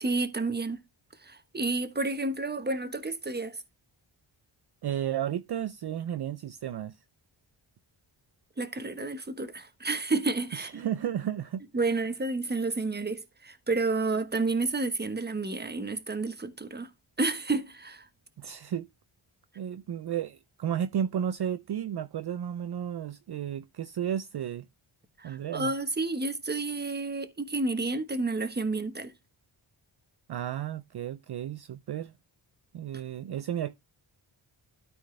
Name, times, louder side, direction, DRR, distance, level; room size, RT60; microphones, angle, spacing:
voice 1, 0.0-0.8 1.2-3.6 8.6-10.8 11.7-16.9 17.2-18.1 25.2-29.1, right 3 dB, 20° right, 1.2 m, -30 dB
voice 2, 4.8-7.0 10.5-11.6 18.4-18.9 19.6-24.7 25.2-25.7 30.3-32.1 32.7-33.7, right 9 dB, 55° right, 0.6 m, -33 dB
13.0 x 4.4 x 3.2 m
wide cardioid pair, 90°, 49 cm